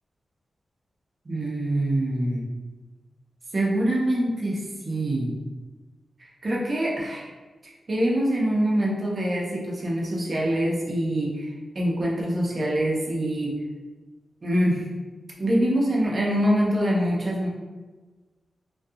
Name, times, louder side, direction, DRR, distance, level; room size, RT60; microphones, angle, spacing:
voice 1, 1.3-2.4 3.5-5.3 6.4-7.3 7.9-11.5 11.7-13.6 14.4-14.9 15.4-17.5, right 1 dB, 45° right, -4 dB, 0.6 m, -24 dB
2.4 x 2.3 x 2.6 m, 1.3 s
wide cardioid pair, 105°, 0 cm